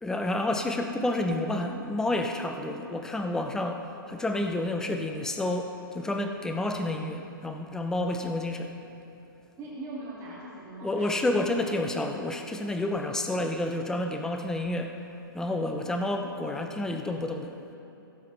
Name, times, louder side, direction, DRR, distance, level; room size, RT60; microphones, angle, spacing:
voice 1, 0.0-8.7 10.8-15.0 15.3-17.5, left 1 dB, 5° left, 4 dB, 0.6 m, -30 dB
voice 2, 9.6-11.7, right 2 dB, 25° right, -6 dB, 2.1 m, -41 dB
16.5 x 7.3 x 4.0 m, 2.9 s
hypercardioid pair, 140°, 12 cm